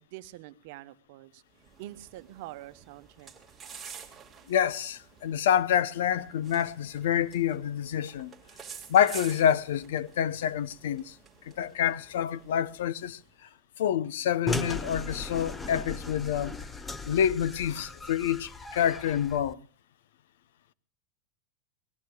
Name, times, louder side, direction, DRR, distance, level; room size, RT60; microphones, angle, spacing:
voice 1, 0.0-3.3, right 15 dB, 55° right, 0.9 m, -46 dB
sound 1, 1.5-13.3, right 6 dB, 10° right, 2.0 m, -49 dB
voice 2, 4.5-8.3 8.9-11.1 11.6-13.2 13.8-16.5 17.1-19.6, left 9 dB, 75° left, 0.7 m, -27 dB
sound 2, 14.5-19.5, left 2 dB, 10° left, 0.6 m, -37 dB
26.0 x 18.5 x 2.3 m
supercardioid pair, 155°, 0 cm